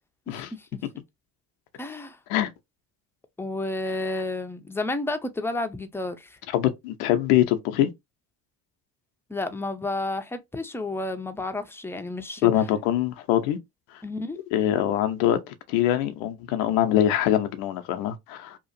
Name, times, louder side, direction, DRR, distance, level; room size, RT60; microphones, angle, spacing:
voice 1, 0.3-0.8 1.8-2.2 3.4-6.4 9.3-12.5 14.0-14.4, left 2 dB, 5° left, 0.5 m, -31 dB
voice 2, 6.5-7.9 12.4-13.6 13.9-14.0 14.5-18.6, left 12 dB, 80° left, 0.7 m, -23 dB
2.9 x 2.4 x 2.6 m
hypercardioid pair, 65°, 46 cm